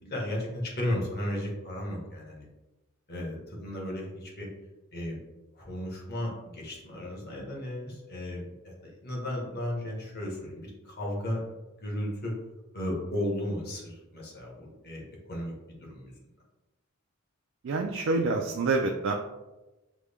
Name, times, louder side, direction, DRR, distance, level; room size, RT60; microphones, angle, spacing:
voice 1, 0.0-2.5 3.1-4.5 4.9-5.2 5.5-12.3 12.7-16.1, left 1 dB, 45° left, -2 dB, 1.2 m, -35 dB
voice 2, 17.6-19.1, right 3 dB, 60° right, 3 dB, 0.4 m, -27 dB
6.1 x 2.1 x 3.4 m, 1.1 s
head